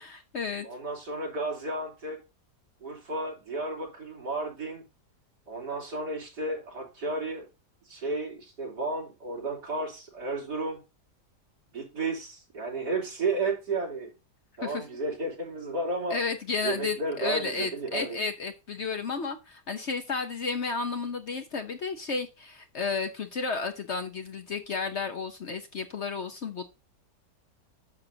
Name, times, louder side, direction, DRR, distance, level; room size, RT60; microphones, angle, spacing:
voice 1, 0.0-0.7 14.6-14.8 16.1-26.6, left 4 dB, 50° left, 7 dB, 0.9 m, -32 dB
voice 2, 0.6-2.2 2.8-4.8 5.5-7.5 7.9-10.8 11.7-14.1 14.6-16.2 16.6-18.2, right 2 dB, 75° right, -2 dB, 3.9 m, -32 dB
10.5 x 6.5 x 2.7 m, 0.28 s
omnidirectional pair, 1.8 m